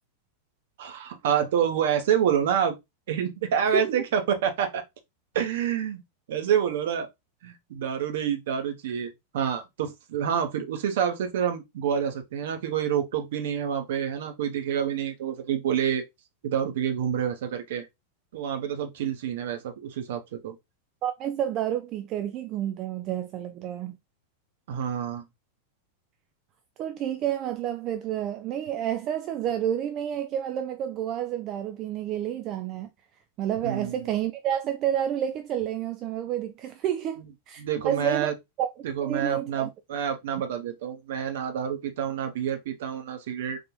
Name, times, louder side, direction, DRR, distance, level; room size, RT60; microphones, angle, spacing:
voice 1, 0.8-2.7 3.1-4.8 5.3-6.0 6.3-7.1 7.4-16.0 16.4-17.9 18.3-20.5 24.7-25.2 33.6-34.1 37.6-38.3 38.8-43.6, right 8 dB, 55° right, 0.8 m, -28 dB
voice 2, 21.0-24.0 26.8-32.9 33.4-38.3 38.6-38.7 39.0-39.7, right 10 dB, 35° right, 0.3 m, -29 dB
4.0 x 2.5 x 3.0 m
figure-of-eight pair, 90°, 0 cm